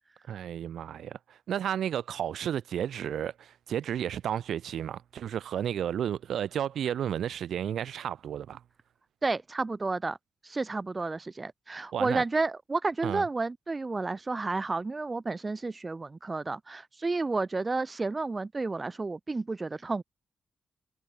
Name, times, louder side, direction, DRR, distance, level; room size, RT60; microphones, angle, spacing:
voice 1, 0.3-8.6 11.9-12.2 13.0-13.2, right 9 dB, 90° right, 5.1 m, -32 dB
voice 2, 9.2-10.2 10.4-20.0, right 3 dB, 20° right, 0.6 m, -31 dB
wide cardioid pair, 160°, 0 cm